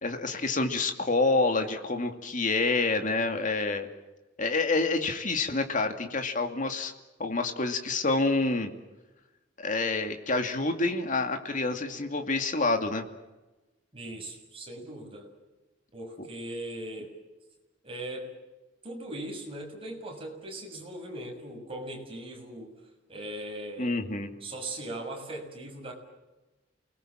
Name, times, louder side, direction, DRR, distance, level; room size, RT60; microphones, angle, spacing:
voice 1, 0.0-3.9 4.4-6.9 7.2-8.7 9.6-13.1 16.2-16.3 23.8-24.3, left 3 dB, 45° left, 5 dB, 2.5 m, -27 dB
voice 2, 13.9-15.3 15.9-17.1 17.8-18.3 18.8-22.7 23.1-23.9 24.4-25.9, right 1 dB, 30° right, 1 dB, 6.7 m, -39 dB
29.5 x 20.5 x 7.6 m, 1.1 s
head